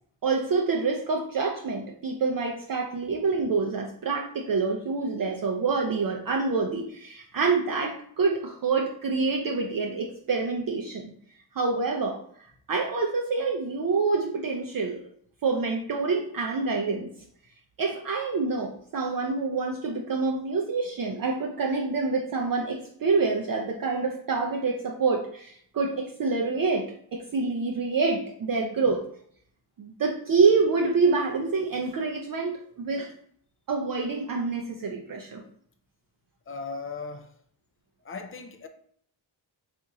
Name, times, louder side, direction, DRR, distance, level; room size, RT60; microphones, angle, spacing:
voice 1, 0.2-11.1 11.5-12.2 12.7-15.0 15.4-17.1 17.8-29.0 29.8-33.1 33.7-35.4, right 4 dB, 45° right, 0.5 m, -27 dB
voice 2, 36.5-37.3 38.0-38.7, left 4 dB, 30° left, 0.4 m, -37 dB
2.9 x 2.5 x 3.6 m
cardioid pair, 65°, 50 cm